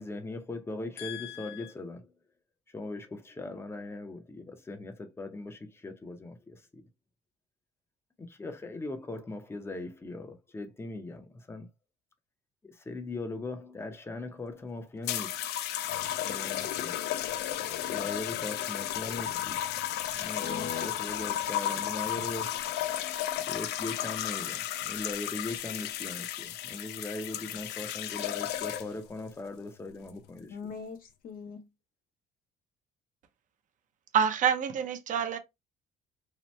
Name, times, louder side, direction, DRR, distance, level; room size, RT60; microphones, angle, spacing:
voice 1, 0.0-2.1 2.7-6.8 8.2-11.7 12.6-15.5 16.1-17.0 17.9-19.6 20.1-22.8 23.5-30.6, left 2 dB, 15° left, 0.6 m, -40 dB
voice 2, 1.0-1.7 20.4-20.9 30.5-31.7, left 7 dB, 55° left, 0.9 m, -40 dB
sound 1, 15.1-29.1 30.0-30.3, left 12 dB, 80° left, 0.4 m, -34 dB
voice 3, 34.1-35.4, right 7 dB, 50° right, 0.6 m, -27 dB
2.8 x 2.1 x 3.1 m
cardioid pair, 110°, 17 cm